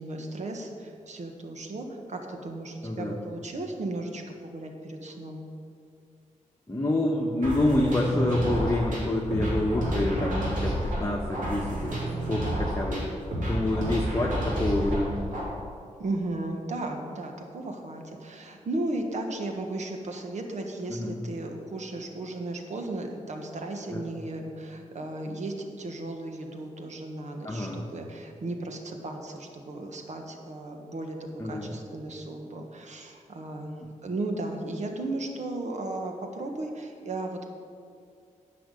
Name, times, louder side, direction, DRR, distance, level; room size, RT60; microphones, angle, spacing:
voice 1, 0.0-5.4 16.0-33.8 34.0-37.4, right 2 dB, 65° right, 3 dB, 1.4 m, -35 dB
voice 2, 2.8-3.2 6.7-12.0 12.3-13.1 13.5-15.4 20.9-21.2 23.9-24.0 27.4-27.8 31.4-31.7, left 1 dB, 20° left, -2 dB, 1.2 m, -27 dB
sound 1, 7.4-15.4, equal, 85° right, 3.1 m, -30 dB
10.5 x 5.9 x 8.3 m, 2.4 s
wide cardioid pair, 100°, 13 cm